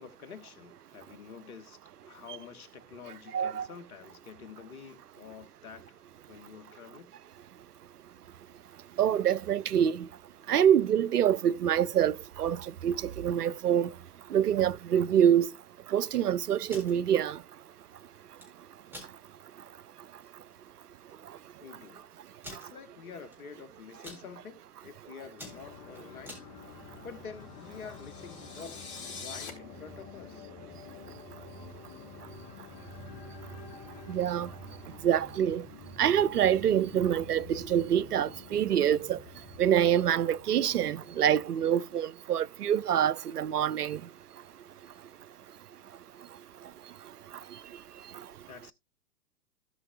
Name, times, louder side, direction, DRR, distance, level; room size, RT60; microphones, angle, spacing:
voice 1, 0.0-6.0 6.3-7.1 21.6-22.1 22.5-26.4 26.7-30.5 48.5-48.7, left 6 dB, 65° left, 1.5 m, -48 dB
voice 2, 3.3-3.7 9.0-10.1 10.5-13.9 14.3-15.5 15.9-17.4 34.1-34.5 35.0-35.6 36.0-39.2 39.6-44.0, right 9 dB, 90° right, 0.5 m, -26 dB
sound 1, 16.5-16.9 18.2-18.5 18.9-19.1 19.6-19.7 20.1-20.3 21.1-21.2 21.4-21.5 22.4-22.7 23.3-23.6 23.9-24.2 24.8-25.0 25.3-26.5, equal, 5° right, 3.9 m, -46 dB
sound 2, 25.4-41.9, left 3 dB, 30° left, 1.4 m, -48 dB
sound 3, 27.6-29.5, left 5 dB, 50° left, 4.1 m, -44 dB
16.5 x 5.5 x 2.3 m
hypercardioid pair, 115°, 45 cm